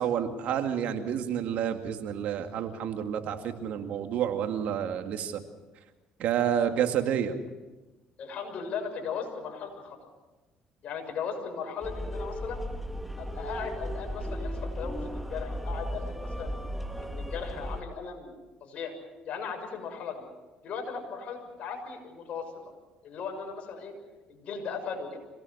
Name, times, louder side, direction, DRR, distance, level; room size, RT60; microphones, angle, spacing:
voice 1, 0.0-5.4 6.2-7.4, right 9 dB, 70° right, 6 dB, 2.2 m, -29 dB
voice 2, 8.2-10.0 10.8-12.7 13.2-16.5 17.0-18.3 18.6-18.9 19.2-20.3 20.6-22.5 23.0-23.9 24.3-25.2, left 6 dB, 60° left, 3 dB, 6.6 m, -37 dB
sound 1, 11.8-17.8, equal, 5° right, 1.6 m, -35 dB
26.0 x 18.5 x 6.6 m, 1.1 s
supercardioid pair, 90°, 3 cm